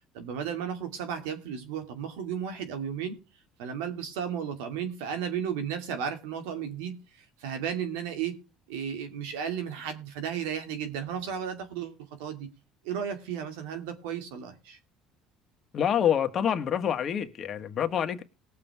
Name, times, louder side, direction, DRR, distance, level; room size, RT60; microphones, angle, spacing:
voice 1, 0.1-3.2 3.6-8.4 8.7-12.5 12.8-14.8, right 8 dB, 85° right, 2.4 m, -34 dB
voice 2, 15.7-18.2, left 9 dB, 45° left, 1.6 m, -27 dB
19.5 x 7.3 x 3.5 m
supercardioid pair, 100°, 0 cm